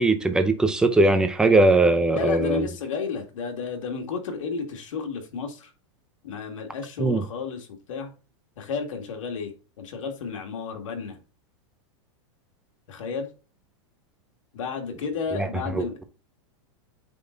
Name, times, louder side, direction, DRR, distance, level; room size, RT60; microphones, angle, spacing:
voice 1, 0.0-2.6 7.0-7.2 15.4-15.5 15.7-16.0, right 2 dB, 5° right, 0.6 m, -20 dB
voice 2, 2.1-5.7 6.2-8.1 8.6-11.2 12.9-13.3 14.5-16.0, left 5 dB, 85° left, 2.2 m, -32 dB
8.7 x 4.0 x 3.9 m
supercardioid pair, 165°, 16 cm